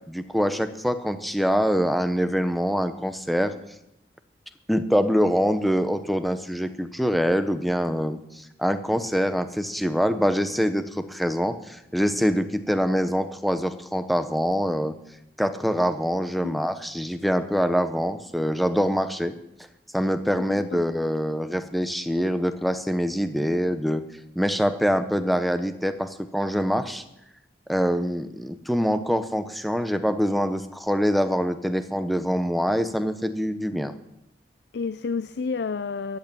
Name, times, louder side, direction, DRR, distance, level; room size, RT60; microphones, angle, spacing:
voice 1, 0.1-3.5 4.7-14.9 15.4-19.3 19.9-24.0 24.4-27.0 27.7-34.0, equal, ahead, 9 dB, 0.8 m, -24 dB
voice 2, 20.4-20.8 34.7-36.2, left 4 dB, 70° left, 14 dB, 0.4 m, -30 dB
14.0 x 8.5 x 9.0 m, 0.85 s
head